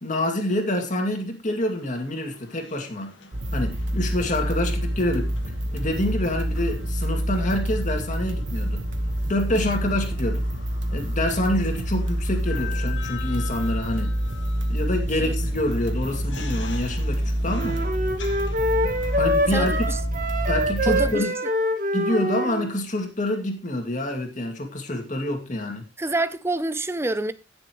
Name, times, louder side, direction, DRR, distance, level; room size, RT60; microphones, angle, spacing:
voice 1, 0.0-3.1 3.5-5.3 5.7-8.8 9.3-10.5 10.9-14.1 14.7-17.8 19.2-19.9 20.5-21.3 21.9-25.8, left 1 dB, 45° left, 2.3 m, -27 dB
sound 1, 1.6-20.0, left 6 dB, 85° left, 1.7 m, -45 dB
sound 2, 3.3-21.1, equal, 75° right, 1.3 m, -27 dB
sound 3, 17.5-22.7, equal, 50° right, 1.6 m, -25 dB
voice 2, 19.5-20.0 20.9-21.3 26.0-27.3, right 2 dB, 15° right, 0.6 m, -27 dB
16.5 x 6.9 x 3.0 m
head